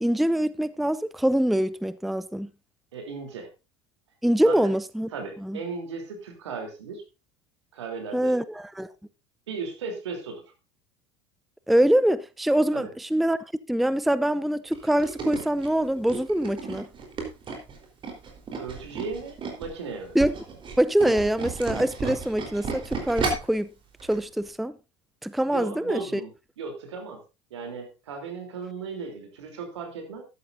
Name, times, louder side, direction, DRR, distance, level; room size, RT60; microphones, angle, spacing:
voice 1, 0.0-2.5 4.2-5.1 5.4-5.6 8.1-8.9 11.7-13.4 13.7-16.9 20.1-20.4 20.8-23.7 24.0-24.7 25.2-26.2, right 1 dB, ahead, 0.5 m, -24 dB
voice 2, 2.9-3.5 4.4-4.6 5.1-7.0 7.7-8.4 9.5-10.4 12.7-12.9 18.6-20.2 25.5-26.3 26.6-27.2 27.5-30.2, right 4 dB, 75° right, 3.3 m, -36 dB
Tools, 14.7-19.7 20.1-23.6 24.0-24.2 24.5-24.6, right 4 dB, 35° right, 3.9 m, -33 dB
13.5 x 11.5 x 2.6 m
hypercardioid pair, 75°, 15 cm